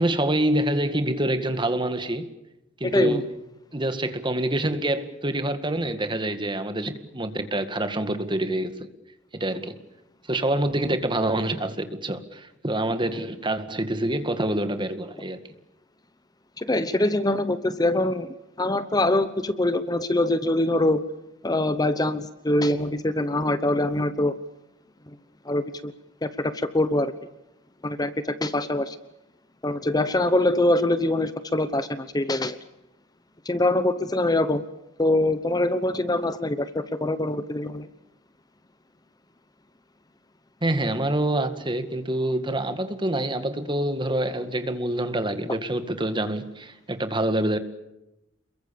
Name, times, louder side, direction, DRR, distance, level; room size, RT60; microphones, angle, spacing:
voice 1, 0.0-2.3 2.8-3.3 3.7-8.9 9.3-9.8 10.3-15.4 40.6-47.6, right 1 dB, 25° right, 2.0 m, -26 dB
voice 2, 2.8-3.2 16.6-18.3 18.6-21.0 21.4-24.3 25.4-25.9 26.2-27.1 27.8-29.0 29.6-32.6 33.4-34.6 35.0-37.9, left 1 dB, 20° left, 1.0 m, -24 dB
28.5 x 22.5 x 7.0 m
head